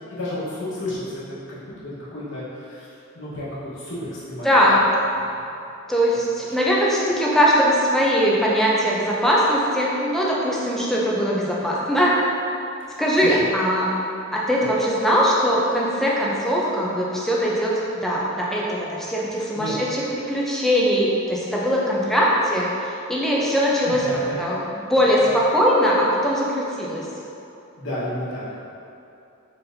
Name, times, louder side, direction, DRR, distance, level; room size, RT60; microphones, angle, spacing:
voice 1, 0.1-1.2 1.5-2.9 3.1-4.5 5.2-5.3 13.2-13.4 14.6-14.7 19.5-19.7 23.7-24.3 25.1-25.2 27.8-28.7, left 1 dB, 65° left, -9 dB, 1.2 m, -32 dB
voice 2, 4.4-4.8 5.9-12.1 13.0-13.9 14.3-24.0 24.4-24.6 24.9-27.1, equal, ahead, -5 dB, 0.5 m, -21 dB
4.1 x 4.0 x 2.6 m, 2.7 s
head